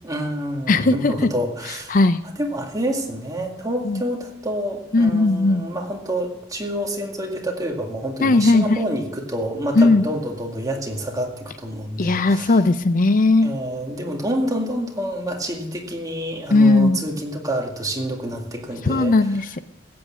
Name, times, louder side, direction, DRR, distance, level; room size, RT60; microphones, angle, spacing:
voice 1, 0.0-2.0 2.4-12.6 13.4-19.1, equal, 20° right, 1 dB, 2.1 m, -28 dB
voice 2, 0.7-1.1 1.9-2.2 3.8-4.0 4.9-5.6 8.2-8.8 9.8-10.0 12.0-13.5 16.5-17.0 18.8-19.6, left 3 dB, 45° left, 12 dB, 0.5 m, -17 dB
15.0 x 8.7 x 7.4 m, 0.84 s
head